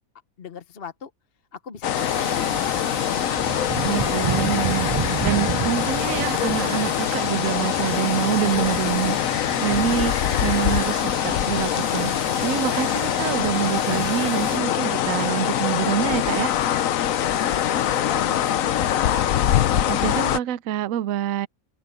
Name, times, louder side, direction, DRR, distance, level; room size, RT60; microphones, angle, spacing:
voice 1, 0.4-1.1 1.5-3.3 17.2-19.4, left 6 dB, 45° left, 1.1 m, -38 dB
sound 1, 1.8-20.4, left 10 dB, 70° left, 1.1 m, -23 dB
sound 2, 1.9-14.6, right 6 dB, 45° right, 0.4 m, -33 dB
voice 2, 3.8-16.5 19.9-21.5, right 11 dB, 70° right, 1.0 m, -26 dB
open air
omnidirectional pair, 1.5 m